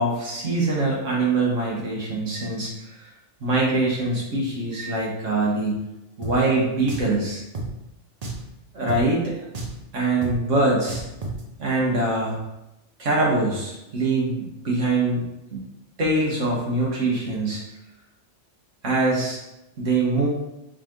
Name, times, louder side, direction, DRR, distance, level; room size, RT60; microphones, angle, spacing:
voice 1, 0.0-2.7 3.0-3.1 3.4-5.8 6.2-7.4 8.7-9.3 9.9-11.0 11.6-12.4 13.0-15.3 15.5-15.6 16.0-17.6 18.8-19.4 19.8-20.3, right 2 dB, 85° right, -4 dB, 1.6 m, -23 dB
Drum, 6.2-6.4 6.9-7.1 7.5-7.7 8.2-8.5 8.9-9.0 9.5-9.8 10.2-10.4 10.9-11.4, right 2 dB, 45° right, 0.6 m, -31 dB
4.7 x 3.7 x 3.0 m, 0.91 s
omnidirectional pair, 1.2 m